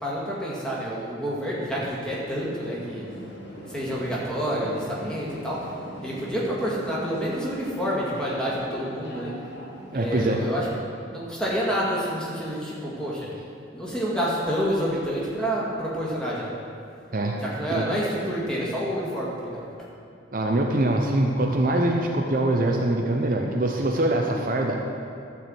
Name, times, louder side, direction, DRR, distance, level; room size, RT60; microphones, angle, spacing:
voice 1, 0.0-3.0 3.7-5.7 6.0-9.4 9.9-13.3 13.7-16.5 17.4-19.6, equal, 5° left, -6 dB, 1.9 m, -28 dB
sound 1, 2.4-10.5, equal, 60° left, 1.6 m, -41 dB
voice 2, 9.9-10.4 17.1-17.4 17.7-17.9 20.3-24.8, right 1 dB, 45° right, 1 dB, 0.7 m, -23 dB
12.0 x 4.7 x 7.8 m, 2.5 s
head